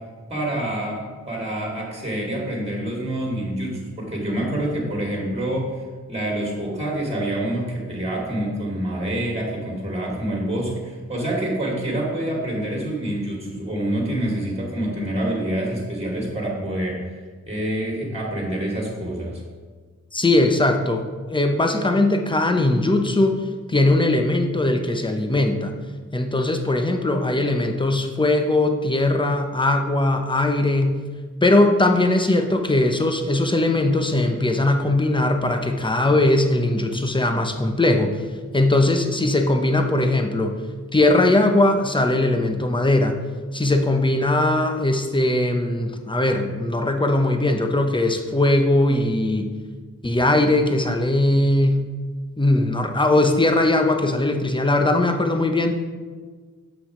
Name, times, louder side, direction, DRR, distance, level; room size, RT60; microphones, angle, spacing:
voice 1, 0.3-5.8 6.1-17.2 17.5-19.4, right 1 dB, 20° right, -2 dB, 2.6 m, -27 dB
voice 2, 20.1-25.7 26.1-31.0 31.4-38.1 38.5-40.6 40.9-43.2 43.5-49.5 50.0-51.9 52.4-55.7, left 2 dB, 15° left, 5 dB, 0.9 m, -20 dB
7.5 x 5.9 x 5.0 m, 1.5 s
cardioid pair, 60°, 30 cm